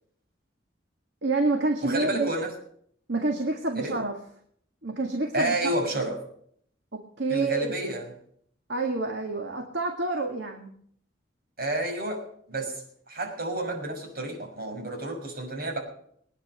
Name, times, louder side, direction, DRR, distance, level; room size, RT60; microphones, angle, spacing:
voice 1, 1.2-2.3 3.1-4.2 4.8-5.6 6.9-7.9 8.7-10.7, right 2 dB, 70° right, 2.0 m, -28 dB
voice 2, 1.8-2.5 3.7-4.0 5.3-6.2 7.3-8.0 11.6-15.8, right 1 dB, 55° right, 6.2 m, -30 dB
21.5 x 9.9 x 6.8 m
head